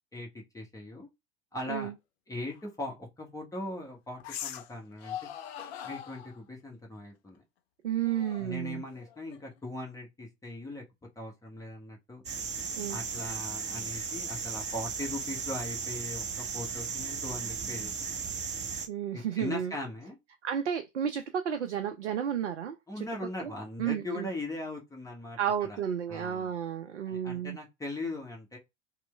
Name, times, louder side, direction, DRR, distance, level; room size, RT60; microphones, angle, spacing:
voice 1, 0.1-1.1 1.5-1.9 2.3-5.2 5.8-7.4 8.4-10.8 11.2-12.2 12.5-18.2 19.1-20.2 22.9-25.8 26.1-26.5 27.0-28.6, left 2 dB, 10° left, 0.9 m, -40 dB
sound 1, 2.5-2.6 4.2-4.7 5.0-6.4 8.0-9.6, left 10 dB, 60° left, 0.6 m, -42 dB
voice 2, 7.8-8.8 12.8-13.0 18.9-19.7 20.4-22.8 23.4-23.5 23.8-24.3 25.4-27.6, right 9 dB, 80° right, 0.5 m, -32 dB
sound 2, 12.2-18.9, right 6 dB, 20° right, 0.6 m, -36 dB
3.0 x 2.1 x 3.2 m
figure-of-eight pair, 80°, 34 cm